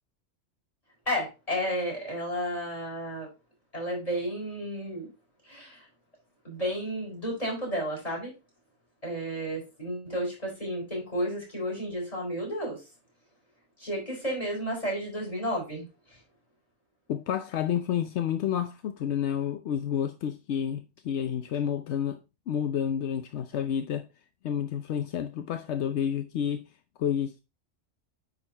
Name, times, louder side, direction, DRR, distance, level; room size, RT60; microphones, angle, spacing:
voice 1, 1.1-3.3 3.7-5.1 5.4-5.9 6.4-8.3 9.0-12.8 13.8-16.2, equal, 30° left, 4.6 m, -32 dB
voice 2, 17.1-22.2 22.5-24.1 24.4-26.6 27.0-27.4, left 9 dB, 80° left, 1.0 m, -30 dB
9.6 x 4.2 x 4.2 m
omnidirectional pair, 1.1 m